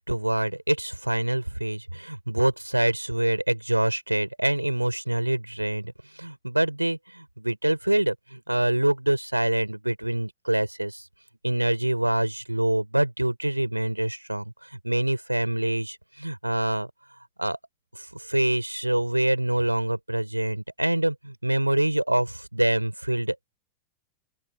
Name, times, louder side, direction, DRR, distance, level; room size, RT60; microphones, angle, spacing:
voice 1, 0.0-11.0 11.4-16.9 17.4-17.6 17.9-23.6, right 1 dB, 85° right, 4.8 m, -25 dB
open air
figure-of-eight pair, 90°, 0 cm